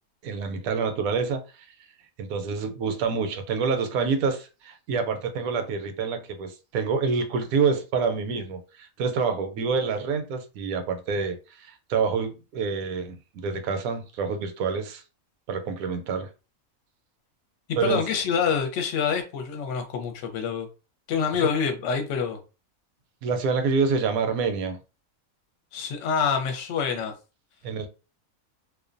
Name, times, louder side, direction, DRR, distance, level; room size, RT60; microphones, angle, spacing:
voice 1, 0.2-1.4 2.2-15.0 15.5-16.3 17.8-18.0 23.2-24.8 27.6-27.9, right 5 dB, 80° right, 1.0 m, -27 dB
voice 2, 17.8-20.7 21.1-22.4 25.7-27.1, left 6 dB, 65° left, 0.9 m, -26 dB
2.5 x 2.1 x 2.5 m
omnidirectional pair, 1.5 m